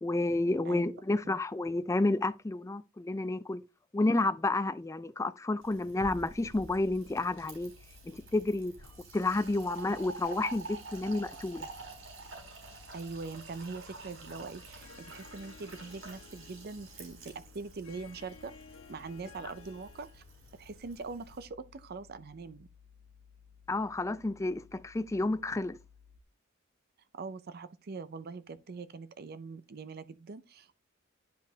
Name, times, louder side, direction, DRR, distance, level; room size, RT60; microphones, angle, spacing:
voice 1, 0.0-3.6 3.9-7.7 8.0-8.7 9.1-11.7 23.7-25.8, left 2 dB, 15° left, 0.3 m, -30 dB
Fill (with liquid), 5.6-21.5, right 3 dB, 75° right, 3.8 m, -48 dB
sound 1, 6.9-26.2, left 7 dB, 50° left, 0.7 m, -59 dB
voice 2, 12.9-18.5 18.9-20.2 20.6-22.7 27.1-30.7, right 4 dB, 50° right, 0.5 m, -42 dB
Harp, 14.8-20.3, left 5 dB, 80° left, 1.1 m, -56 dB
10.5 x 5.1 x 2.8 m
head